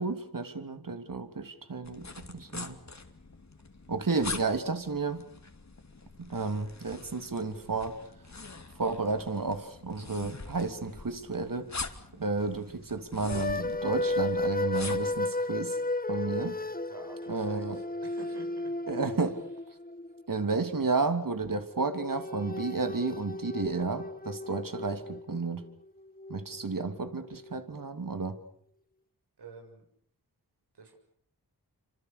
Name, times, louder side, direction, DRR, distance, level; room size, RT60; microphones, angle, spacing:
voice 1, 0.0-2.8 3.9-5.2 6.2-8.0 8.8-11.7 12.2-15.8 16.1-16.6 17.3-17.8 18.9-19.4 20.3-25.6 26.3-28.4, right 3 dB, 55° right, 8 dB, 3.1 m, -32 dB
sound 1, 1.8-15.2, left 3 dB, 45° left, 2.7 m, -44 dB
sound 2, 13.3-20.6 21.7-27.8, left 2 dB, 20° left, 1.5 m, -34 dB
voice 2, 16.9-18.7 29.4-29.9 30.7-30.9, right 3 dB, 85° right, 3 dB, 7.0 m, -49 dB
28.0 x 25.5 x 6.8 m, 0.65 s
cardioid pair, 55°, 39 cm